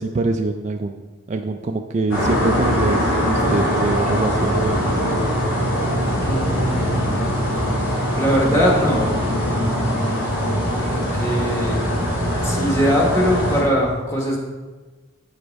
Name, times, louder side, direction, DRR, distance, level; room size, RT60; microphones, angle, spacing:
voice 1, 0.0-5.1, right 3 dB, 35° right, 5 dB, 0.3 m, -24 dB
sound 1, 2.1-13.6, equal, 75° left, 2.6 m, -21 dB
voice 2, 6.2-7.0 8.1-9.2 9.5-10.2 10.7-11.8 12.4-14.4, equal, 15° left, -3 dB, 1.4 m, -22 dB
8.0 x 5.1 x 4.6 m, 1.3 s
head